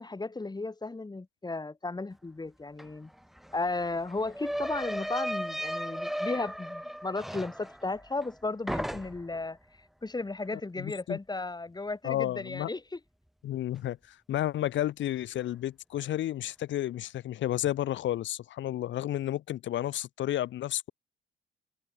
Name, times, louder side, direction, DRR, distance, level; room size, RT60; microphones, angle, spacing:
voice 1, 0.0-3.1 3.5-9.6 10.0-13.0, left 3 dB, 20° left, 8.0 m, -35 dB
sound 1, 2.8-2.9 3.1-8.4 8.7-9.4, equal, ahead, 1.4 m, -36 dB
voice 2, 10.8-11.2 12.0-12.7 13.4-14.0 14.3-20.9, left 13 dB, 70° left, 0.9 m, -31 dB
cardioid pair, 90°, 20 cm